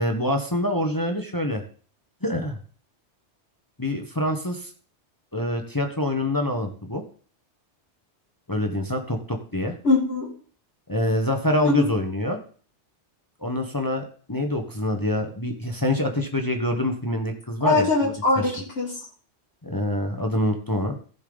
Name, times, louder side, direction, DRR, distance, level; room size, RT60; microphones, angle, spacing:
voice 1, 0.0-1.6 2.2-2.6 3.8-4.7 5.3-7.0 8.5-9.7 10.9-12.4 13.4-17.9 18.4-18.5 19.6-21.0, left 1 dB, 20° left, 4 dB, 1.3 m, -25 dB
voice 2, 9.8-10.3 11.6-11.9 17.6-18.9, left 3 dB, 85° left, -5 dB, 3.8 m, -22 dB
15.5 x 7.0 x 4.0 m, 0.42 s
omnidirectional pair, 1.2 m